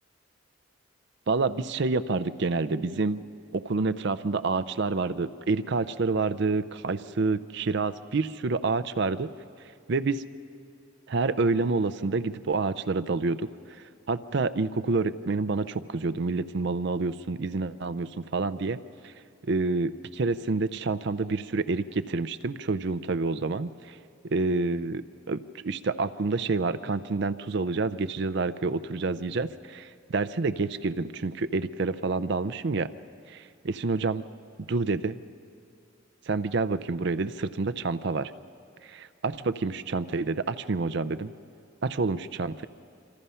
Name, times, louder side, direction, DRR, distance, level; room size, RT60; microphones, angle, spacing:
voice 1, 1.3-3.2 3.5-9.3 9.9-10.2 11.1-13.5 14.1-18.8 19.0-19.1 19.5-24.0 24.2-32.9 33.3-34.2 34.6-35.2 36.3-38.3 38.8-41.3 41.8-42.6, right 3 dB, 55° right, 13 dB, 0.5 m, -28 dB
26.5 x 25.5 x 5.6 m, 2.4 s
head